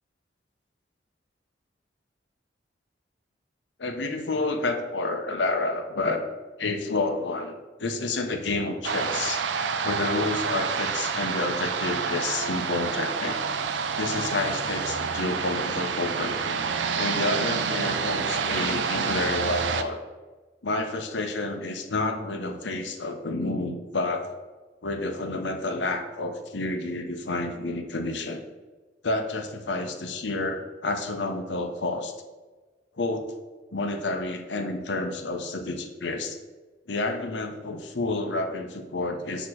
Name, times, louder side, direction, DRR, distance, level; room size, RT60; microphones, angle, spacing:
voice 1, 3.8-6.2 6.6-7.5 7.8-9.4 9.8-13.4 13.9-16.6 16.9-20.0 20.6-24.3 24.8-28.4 29.0-32.1 33.0-33.3 33.7-36.4 36.9-39.5, left 2 dB, 80° left, 5 dB, 0.8 m, -29 dB
sound 1, 8.8-19.8, right 5 dB, 85° right, 0.5 m, -28 dB
8.2 x 3.0 x 6.1 m, 1.3 s
head